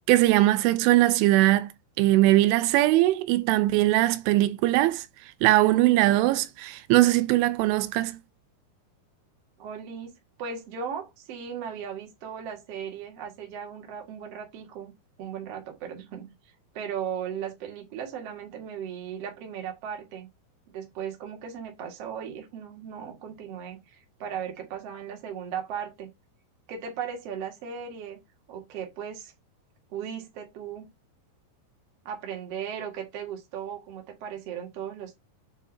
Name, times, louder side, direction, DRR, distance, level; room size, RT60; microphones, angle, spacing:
voice 1, 0.1-1.7 2.0-5.0 5.4-8.2, right 16 dB, 85° right, 3.1 m, -21 dB
voice 2, 9.6-14.9 15.2-16.3 16.7-20.3 20.7-26.1 26.7-28.2 28.5-29.3 29.9-30.9 32.0-35.2, right 8 dB, 45° right, 2.1 m, -37 dB
7.0 x 5.6 x 2.7 m
omnidirectional pair, 5.5 m